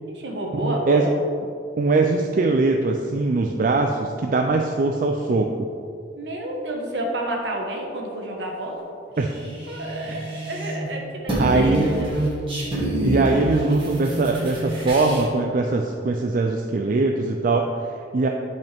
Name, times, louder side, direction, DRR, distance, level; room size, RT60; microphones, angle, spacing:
voice 1, 0.1-1.1 6.2-8.8 9.4-12.1, right 1 dB, 70° right, 0 dB, 1.4 m, -30 dB
voice 2, 0.6-1.1 1.8-5.7 9.2-9.3 10.1-10.2 11.4-12.0 13.0-18.3, right 3 dB, 45° right, 3 dB, 0.4 m, -22 dB
sound 1, 9.2-10.9 11.1-15.2, right 1 dB, 30° right, 2.0 m, -26 dB
10.5 x 5.3 x 3.5 m, 2.4 s
head